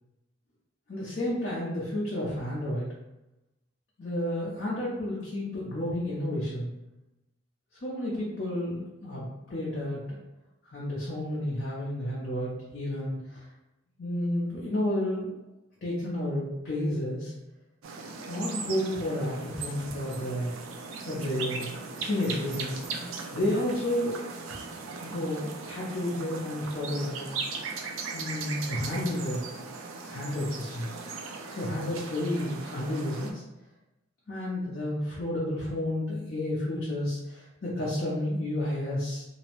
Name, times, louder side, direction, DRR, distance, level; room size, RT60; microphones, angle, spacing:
voice 1, 0.9-2.9 4.0-6.7 7.8-10.0 10.7-13.4 14.0-15.3 15.8-17.3 18.3-20.5 21.1-21.7 22.0-22.8 23.3-24.2 24.5-24.6 25.0-27.3 28.1-29.4 30.1-30.9 31.5-33.4 34.3-39.2, left 1 dB, 45° left, -7 dB, 0.6 m, -31 dB
sound 1, 17.8-33.3, right 4 dB, 75° right, 0.4 m, -38 dB
2.7 x 2.0 x 2.9 m, 0.96 s
head